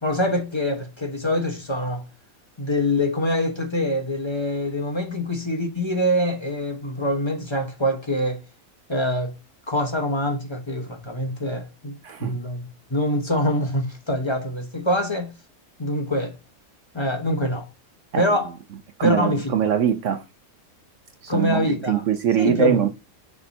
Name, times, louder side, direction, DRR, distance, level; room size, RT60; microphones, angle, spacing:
voice 1, 0.0-2.0 2.6-8.4 8.9-9.3 9.7-15.3 15.8-16.4 16.9-17.7 18.1-18.5 19.0-19.7 21.3-22.0 22.4-22.8, left 1 dB, 20° left, 0.9 m, -25 dB
voice 2, 19.0-20.2 21.2-22.9, right 9 dB, 65° right, 0.9 m, -22 dB
6.6 x 3.5 x 4.2 m
omnidirectional pair, 1.5 m